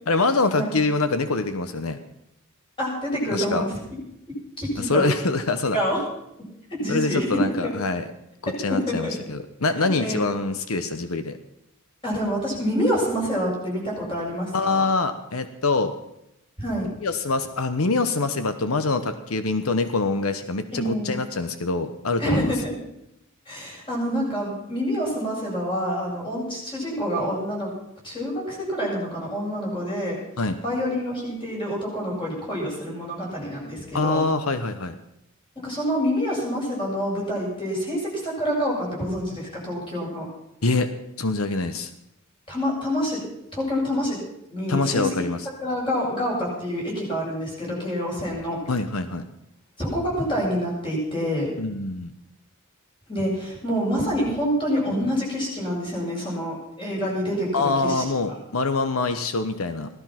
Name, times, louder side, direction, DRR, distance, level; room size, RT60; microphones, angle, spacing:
voice 1, 0.1-2.0 3.3-3.6 4.8-5.8 6.9-8.0 8.4-11.4 14.5-15.9 17.0-22.5 30.4-30.6 33.9-35.0 40.6-40.9 41.2-41.9 44.7-45.4 48.7-49.3 51.6-52.1 57.5-59.9, left 3 dB, 85° left, 10 dB, 1.1 m, -24 dB
voice 2, 2.8-3.7 4.3-5.1 5.7-6.0 6.7-7.7 8.5-9.1 9.8-10.2 12.0-14.8 16.6-16.9 20.7-21.2 22.2-22.7 23.5-27.7 28.0-30.2 30.6-34.2 35.6-40.3 42.5-43.2 43.5-44.2 44.5-45.2 45.6-48.6 49.8-51.5 53.1-58.0, equal, 25° left, -4 dB, 7.8 m, -27 dB
16.5 x 13.0 x 6.0 m, 0.82 s
head